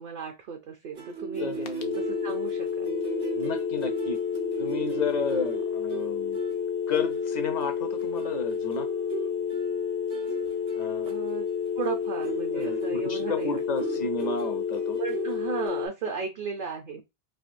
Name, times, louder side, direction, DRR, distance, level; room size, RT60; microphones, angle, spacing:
voice 1, 0.0-1.5 2.0-3.0 11.1-11.5 11.8-13.6 13.9-14.1 15.0-17.0, right 6 dB, 55° right, 0.6 m, -35 dB
sound 1, 0.9-15.7, right 5 dB, 85° right, 1.3 m, -38 dB
voice 2, 1.4-2.0 3.3-4.2 4.6-6.4 6.9-8.9 10.7-11.1 12.5-15.0 16.1-16.2, left 5 dB, 55° left, 0.5 m, -32 dB
sound 2, 1.7-15.9, left 7 dB, 90° left, 0.9 m, -30 dB
3.5 x 2.5 x 2.5 m
omnidirectional pair, 1.1 m